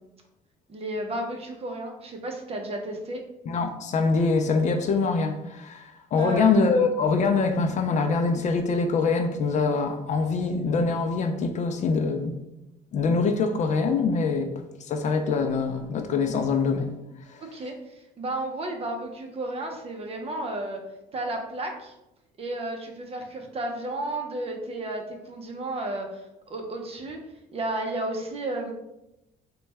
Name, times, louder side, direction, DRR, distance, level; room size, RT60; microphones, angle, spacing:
voice 1, 0.7-3.2 6.2-6.6 17.4-20.8 21.1-21.9 22.4-26.2 26.5-27.2 27.5-28.7, right 1 dB, 35° right, 0.7 m, -32 dB
voice 2, 3.5-12.3 12.9-17.0 17.3-17.4, left 4 dB, 45° left, 0.4 m, -24 dB
4.0 x 2.2 x 3.3 m
cardioid pair, 110°, 17 cm